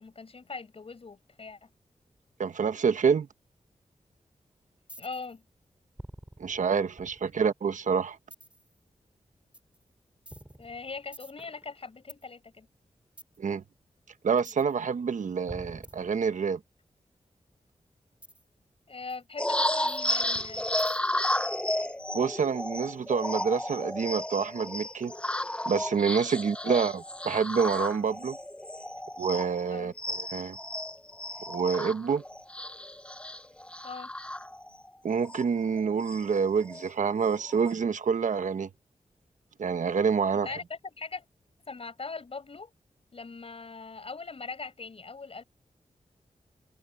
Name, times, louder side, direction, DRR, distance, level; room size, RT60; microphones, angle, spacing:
voice 1, 0.0-1.7 5.0-5.4 10.6-12.7 18.9-20.7 26.6-26.9 29.7-29.9 33.8-34.1 40.3-41.2 41.7-42.7 43.1-45.4, left 4 dB, 50° left, 6.6 m, -41 dB
voice 2, 2.4-3.3 6.4-8.2 13.4-13.6 14.2-16.6 22.1-25.1 25.6-28.4 29.2-30.6 31.5-32.2 35.0-38.7 39.6-40.5, right 6 dB, 80° right, 1.2 m, -27 dB
sound 1, 4.9-5.4 6.0-7.5 8.3-8.7 9.5-9.8 10.2-12.2 13.2-13.4 14.4-14.7 15.5-16.6 18.2-18.4 19.1-19.2 19.9-21.2, right 1 dB, 10° right, 5.5 m, -48 dB
sound 2, 19.4-29.7 30.0-34.9 35.3-35.4 35.7-36.9 37.3-37.7, left 1 dB, 10° left, 0.7 m, -33 dB
wide cardioid pair, 130°, 13 cm